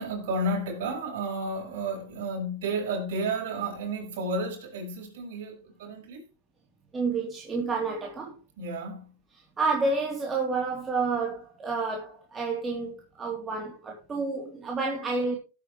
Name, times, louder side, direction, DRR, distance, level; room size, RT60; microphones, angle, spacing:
voice 1, 0.0-6.2 8.6-9.1, right 2 dB, 65° right, 6.3 m, -32 dB
voice 2, 6.9-8.4 9.6-15.4, right 3 dB, 20° right, 3.1 m, -29 dB
16.5 x 8.4 x 3.2 m
hypercardioid pair, 110°, 0 cm